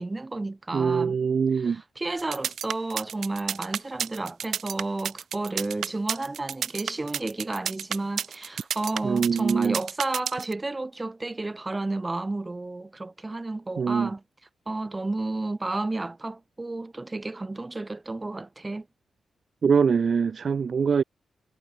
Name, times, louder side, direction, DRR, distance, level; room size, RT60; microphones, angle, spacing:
voice 1, 0.0-1.2 1.5-14.2 14.7-18.9, right 2 dB, 20° right, 1.5 m, -32 dB
voice 2, 0.7-1.8 9.0-9.8 13.8-14.1 19.6-21.0, right 6 dB, 55° right, 0.7 m, -23 dB
sound 1, 2.2-10.5, right 8 dB, 75° right, 1.1 m, -31 dB
cardioid pair, 90°, 0 cm